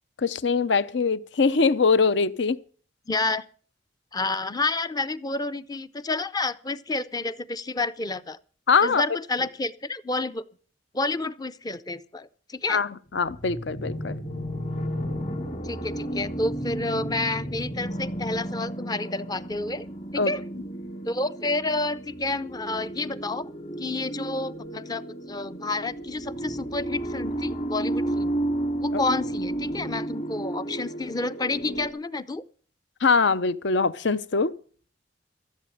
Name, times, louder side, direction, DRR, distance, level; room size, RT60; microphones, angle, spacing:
voice 1, 0.2-2.6 8.7-9.0 12.7-14.2 20.2-20.3 28.9-29.0 33.0-34.5, left 4 dB, 70° left, 0.7 m, -22 dB
voice 2, 3.1-3.4 4.1-8.4 8.8-10.4 10.9-12.8 15.6-19.9 20.1-20.4 21.0-23.5 23.8-25.0 25.3-28.3 28.8-32.4, left 2 dB, 20° left, 0.5 m, -29 dB
sound 1, 13.2-31.9, right 1 dB, 40° left, 2.4 m, -32 dB
14.5 x 7.7 x 7.8 m
head